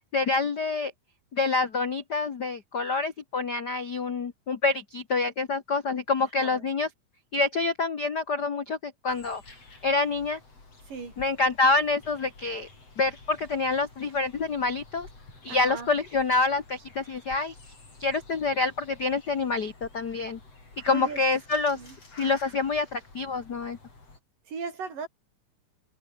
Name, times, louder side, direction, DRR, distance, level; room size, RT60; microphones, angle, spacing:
voice 1, 0.1-0.9 1.3-6.9 7.3-9.4 9.8-10.4 11.2-12.7 13.0-15.1 15.4-17.5 18.0-20.4 20.8-21.8 22.2-23.8, left 3 dB, 85° left, 0.9 m, -27 dB
voice 2, 6.2-6.7 10.9-11.1 15.5-15.9 20.9-21.2 21.8-22.0 24.5-25.1, right 5 dB, 60° right, 6.8 m, -37 dB
sound 1, 9.1-24.2, left 3 dB, 40° left, 8.3 m, -51 dB
omnidirectional pair, 4.3 m